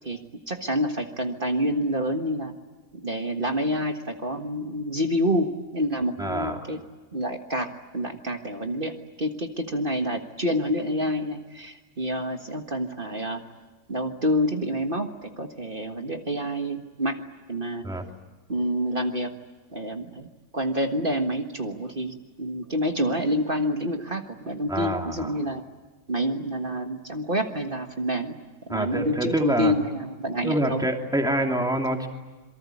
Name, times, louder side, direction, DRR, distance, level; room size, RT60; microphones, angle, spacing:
voice 1, 0.0-2.5 3.0-6.8 7.1-13.4 13.9-17.2 17.5-17.8 18.5-19.3 19.7-20.3 20.5-25.6 26.1-28.3 28.7-30.9, equal, 35° right, 5 dB, 1.7 m, -28 dB
voice 2, 6.2-6.7 17.8-18.0 24.7-25.3 28.7-29.7 30.4-32.1, right 1 dB, ahead, 3 dB, 2.8 m, -26 dB
27.0 x 23.5 x 8.5 m, 1.3 s
omnidirectional pair, 1.6 m